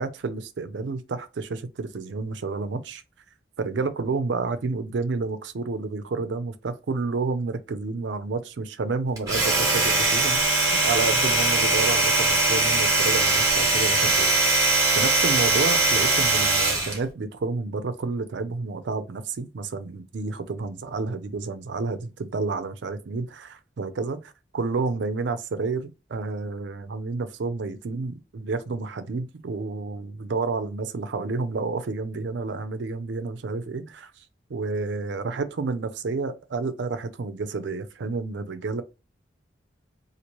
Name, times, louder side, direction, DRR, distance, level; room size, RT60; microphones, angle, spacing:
voice 1, 0.0-3.0 3.6-14.3 15.0-34.2 34.5-38.8, right 4 dB, 70° right, 0.4 m, -30 dB
Domestic sounds home sounds, 9.2-17.0, right 2 dB, 20° right, 0.9 m, -21 dB
2.9 x 2.5 x 2.9 m
head